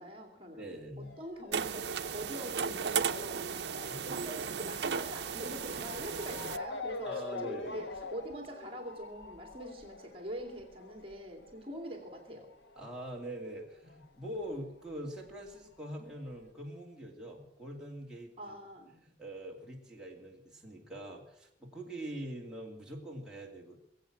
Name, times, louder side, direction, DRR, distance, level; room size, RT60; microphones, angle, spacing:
voice 1, 0.0-0.7 1.0-12.5 18.4-18.9, equal, 30° right, 3 dB, 2.5 m, -44 dB
voice 2, 0.6-1.1 4.0-4.3 5.5-5.6 7.0-7.8 12.8-18.3 18.9-23.8, right 1 dB, 5° right, -3 dB, 2.7 m, -43 dB
Motor vehicle (road) / Siren, 1.0-14.0 14.3-15.5 16.1-16.2 16.5-16.6, left 3 dB, 85° left, 1.2 m, -46 dB
sound 1, 1.5-6.6, right 6 dB, 80° right, 0.6 m, -35 dB
21.5 x 8.3 x 7.4 m, 0.76 s
head